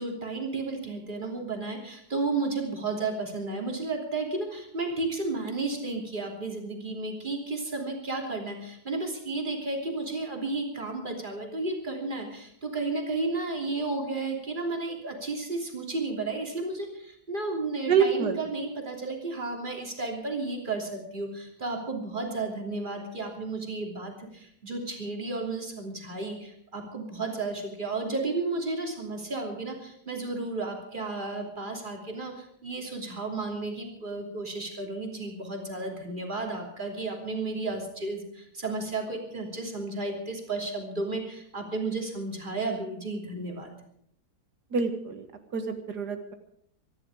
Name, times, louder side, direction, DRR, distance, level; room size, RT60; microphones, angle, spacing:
voice 1, 0.0-43.7, right 3 dB, 30° right, 2 dB, 3.2 m, -33 dB
voice 2, 17.9-18.4 44.7-45.2 45.5-46.3, right 6 dB, 75° right, 7 dB, 2.2 m, -26 dB
24.5 x 11.0 x 4.9 m, 0.69 s
omnidirectional pair, 1.8 m